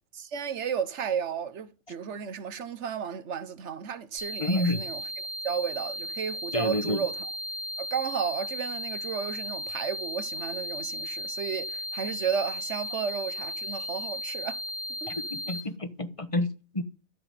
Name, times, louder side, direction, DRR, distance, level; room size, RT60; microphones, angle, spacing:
voice 1, 0.1-7.3 7.8-14.6 15.0-15.1, right 7 dB, 90° right, 1.3 m, -33 dB
sound 1, 4.2-15.6, left 1 dB, 45° right, 2.5 m, -36 dB
voice 2, 4.4-4.8 6.5-7.0 15.1-15.2 15.5-16.5 16.7-16.8, left 1 dB, 30° left, 1.2 m, -28 dB
13.0 x 6.0 x 9.5 m
omnidirectional pair, 1.2 m